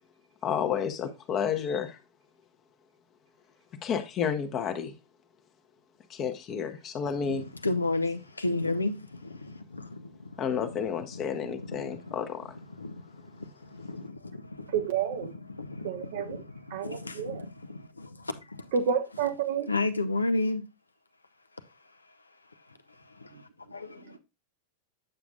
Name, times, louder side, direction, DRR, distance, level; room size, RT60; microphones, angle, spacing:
voice 1, 0.4-2.0 3.8-4.9 6.1-7.4 10.4-12.5, left 7 dB, 30° left, 0.9 m, -31 dB
voice 2, 7.1-12.2 12.5-18.7 19.7-20.6 23.0-24.2, left 2 dB, 80° left, 0.7 m, -34 dB
voice 3, 14.7-15.3 15.8-16.4 16.7-17.3 18.7-19.7, right 7 dB, 55° right, 0.7 m, -29 dB
8.9 x 7.0 x 2.3 m
figure-of-eight pair, 90°, 0 cm